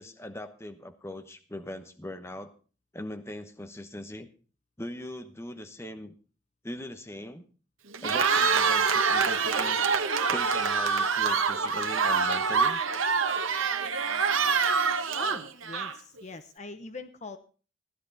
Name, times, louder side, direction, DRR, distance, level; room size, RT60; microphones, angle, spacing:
voice 1, 0.0-2.5 2.9-4.3 4.8-6.1 6.6-7.4 8.0-9.8 10.3-12.8, left 1 dB, 15° left, 8 dB, 1.0 m, -40 dB
Cheering, 7.9-16.2, right 5 dB, 90° right, 1.2 m, -25 dB
voice 2, 15.2-17.4, left 3 dB, 35° left, 9 dB, 0.8 m, -42 dB
15.5 x 11.0 x 4.0 m, 0.37 s
head